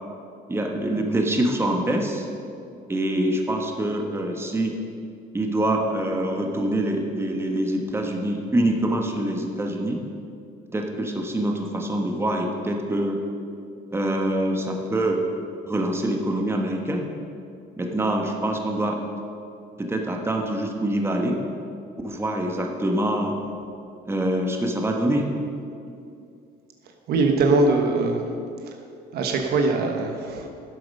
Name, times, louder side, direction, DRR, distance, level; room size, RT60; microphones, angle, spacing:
voice 1, 0.5-2.3 2.9-4.8 5.3-10.0 10.7-13.2 13.9-15.2 15.7-17.1 17.8-19.0 19.8-21.4 22.0-23.3 24.1-25.3, right 1 dB, 15° right, 2 dB, 1.3 m, -25 dB
voice 2, 27.1-28.2 29.1-30.5, right 3 dB, 70° right, 3 dB, 1.2 m, -21 dB
12.0 x 7.8 x 5.5 m, 2.5 s
cardioid pair, 110°, 17 cm